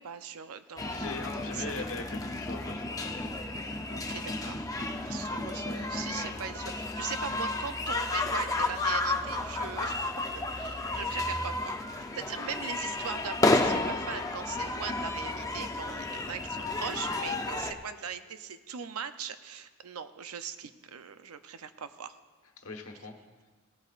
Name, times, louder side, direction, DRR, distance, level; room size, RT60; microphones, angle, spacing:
voice 1, 0.0-1.9 3.9-4.7 5.0-11.8 12.2-22.1, right 7 dB, 70° right, 10 dB, 0.6 m, -40 dB
sound 1, 0.8-17.7, left 2 dB, 15° left, 0.6 m, -32 dB
voice 2, 0.9-3.0 22.6-23.2, left 3 dB, 70° left, 3 dB, 1.3 m, -40 dB
17.0 x 12.5 x 2.5 m, 1.4 s
head